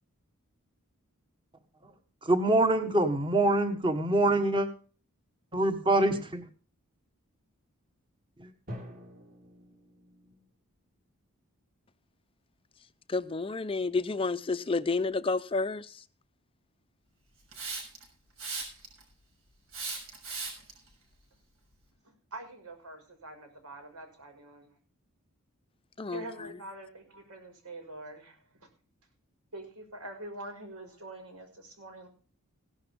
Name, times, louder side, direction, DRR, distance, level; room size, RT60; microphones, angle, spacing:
voice 1, 2.2-4.7 5.5-6.4, right 1 dB, 20° right, 1.4 m, -25 dB
Drum, 8.7-10.6, equal, 40° right, 3.7 m, -46 dB
voice 2, 13.1-16.0 26.0-26.5, left 3 dB, 25° left, 0.5 m, -30 dB
Hiss, 17.5-18.0 18.4-19.0 19.7-20.7, right 4 dB, 70° right, 6.5 m, -37 dB
voice 3, 22.0-24.7 26.1-28.7 29.5-32.1, right 2 dB, 90° right, 5.8 m, -45 dB
16.5 x 12.0 x 3.6 m
head